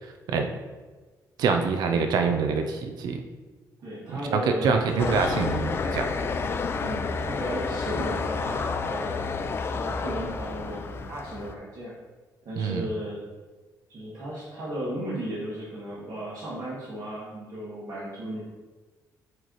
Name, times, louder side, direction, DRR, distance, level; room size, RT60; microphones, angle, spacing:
voice 1, 1.4-3.2 4.1-6.1 12.6-12.8, right 5 dB, 80° right, 5 dB, 0.6 m, -25 dB
voice 2, 3.8-5.6 6.8-11.9 12.4-13.2 13.9-18.4, right 1 dB, 55° right, -9 dB, 1.9 m, -35 dB
sound 1, 5.0-11.5, left 4 dB, 35° left, 0.4 m, -30 dB
8.6 x 3.3 x 4.0 m, 1.3 s
cardioid pair, 130°, 7 cm